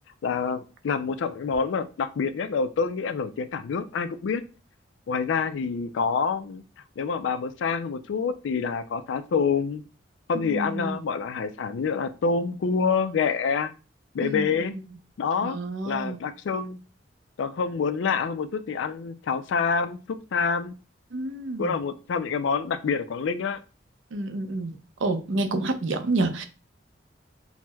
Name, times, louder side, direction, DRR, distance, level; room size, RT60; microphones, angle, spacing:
voice 1, 0.2-4.4 5.1-6.6 7.0-9.8 10.3-13.7 14.1-14.8 15.2-15.6 15.9-16.8 17.4-20.7 21.6-23.6, left 5 dB, 80° left, 0.3 m, -27 dB
voice 2, 10.3-11.0 14.2-14.5 15.4-16.2 21.1-21.7 24.1-24.7 25.0-26.4, right 2 dB, 80° right, 0.5 m, -28 dB
5.9 x 2.0 x 2.2 m
head